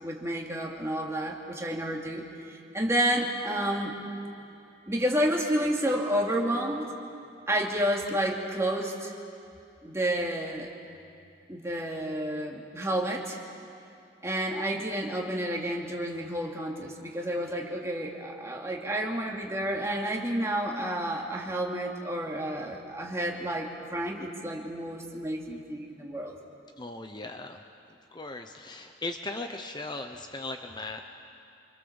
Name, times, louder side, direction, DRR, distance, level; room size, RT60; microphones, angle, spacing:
voice 1, 0.0-3.9 4.9-6.9 7.5-9.1 9.8-10.7 11.5-13.4 14.2-26.3, right 1 dB, 15° right, -1 dB, 2.8 m, -30 dB
voice 2, 26.8-27.6 28.1-31.0, left 2 dB, 25° left, 5 dB, 0.9 m, -38 dB
27.0 x 25.0 x 7.1 m, 2.6 s
head